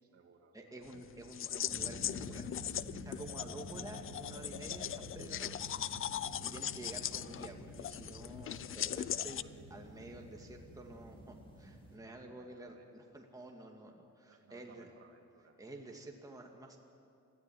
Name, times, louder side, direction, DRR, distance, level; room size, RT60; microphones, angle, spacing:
voice 1, 0.0-0.8 9.4-9.6 12.0-12.9 14.3-15.6, right 4 dB, 50° right, 3 dB, 2.7 m, -63 dB
voice 2, 0.5-5.8 6.1-9.4 9.7-14.9 15.6-16.8, right 2 dB, 10° right, 1 dB, 2.2 m, -50 dB
sound 1, 0.9-9.4, left 10 dB, 45° left, 0.5 m, -40 dB
sound 2, 1.7-12.0, equal, 15° left, 5.4 m, -50 dB
20.5 x 14.5 x 9.3 m, 2.5 s
cardioid pair, 90°, 30 cm